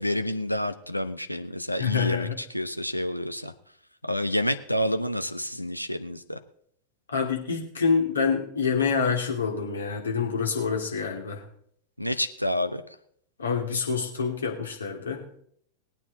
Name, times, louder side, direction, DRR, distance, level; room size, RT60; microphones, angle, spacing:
voice 1, 0.0-3.5 4.0-6.4 12.0-12.8, left 1 dB, 90° left, 9 dB, 0.8 m, -29 dB
voice 2, 1.8-2.4 7.1-11.4 13.4-15.4, left 5 dB, 70° left, 1 dB, 2.7 m, -27 dB
19.5 x 9.0 x 4.0 m, 0.65 s
figure-of-eight pair, 90°, 0 cm